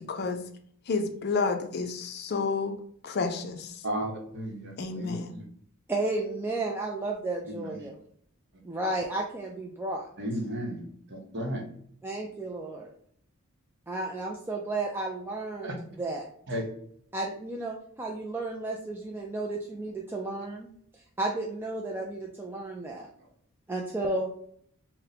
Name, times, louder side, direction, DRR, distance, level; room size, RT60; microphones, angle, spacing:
voice 1, 0.1-0.4 0.9-2.7 3.0-3.8 4.8-5.3, left 4 dB, 50° left, 6 dB, 0.5 m, -30 dB
voice 2, 3.8-5.4 7.5-7.8 10.2-10.8 11.1-11.6 15.6-15.7 16.5-16.6, right 1 dB, 55° right, 2 dB, 0.9 m, -34 dB
voice 3, 5.9-8.0 8.6-10.0 12.0-12.9 13.9-16.3 17.1-20.7 20.9-23.1 23.7-24.3, right 2 dB, 10° right, -1 dB, 0.3 m, -33 dB
3.9 x 2.1 x 4.1 m, 0.63 s
head